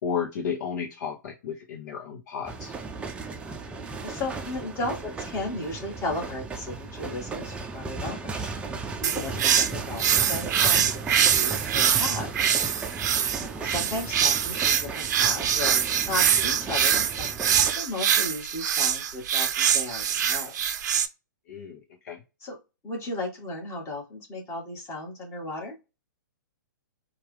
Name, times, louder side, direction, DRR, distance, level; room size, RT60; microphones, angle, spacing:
voice 1, 0.0-2.7 9.3-9.4 13.2-13.3 21.5-21.8 22.0-22.2, left 7 dB, 55° left, 2 dB, 0.9 m, -33 dB
sound 1, 2.4-17.7, right 4 dB, 10° right, 0.6 m, -36 dB
voice 2, 3.7-8.5 9.0-12.8 13.4-17.3 17.7-20.5 22.4-22.6 22.8-25.8, left 2 dB, 25° left, -1 dB, 2.1 m, -35 dB
sound 2, 9.0-21.1, right 8 dB, 55° right, 0.6 m, -24 dB
4.4 x 2.5 x 3.3 m, 0.27 s
hypercardioid pair, 120°, 11 cm